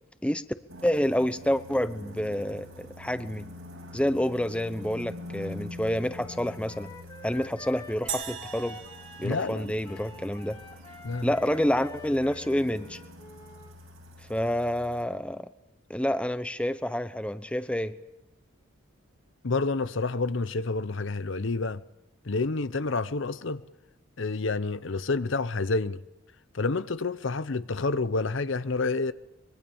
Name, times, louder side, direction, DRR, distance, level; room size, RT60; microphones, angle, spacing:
sound 1, 0.7-15.0, left 2 dB, 85° right, 7.4 m, -46 dB
voice 1, 0.8-3.5 3.9-6.9 7.2-8.8 9.2-10.6 11.2-13.0 14.3-15.5 15.9-18.0, equal, 5° left, 0.8 m, -28 dB
Wind instrument woodwind instrument, 6.2-13.7, left 2 dB, 20° left, 2.8 m, -47 dB
sound 2, 8.1-10.5, right 8 dB, 55° right, 2.3 m, -39 dB
voice 2, 9.2-9.7 11.0-11.3 19.4-21.8 22.3-23.6 24.2-26.0 26.5-29.1, left 3 dB, 65° left, 0.8 m, -29 dB
24.5 x 23.0 x 7.1 m
head